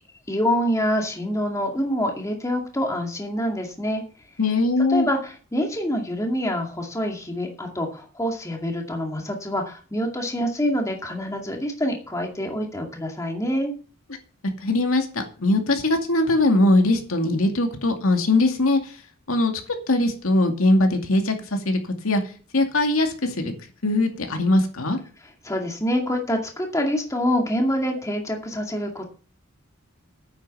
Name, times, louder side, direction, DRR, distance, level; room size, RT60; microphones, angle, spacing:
voice 1, 0.3-4.0 4.9-13.7 25.4-29.1, equal, 15° left, 2 dB, 2.2 m, -26 dB
voice 2, 4.4-5.1 14.6-18.9 19.3-19.5 19.9-22.2 22.5-23.5 23.8-25.0, left 2 dB, 85° left, 4 dB, 2.3 m, -21 dB
9.6 x 8.2 x 6.8 m, 0.40 s
head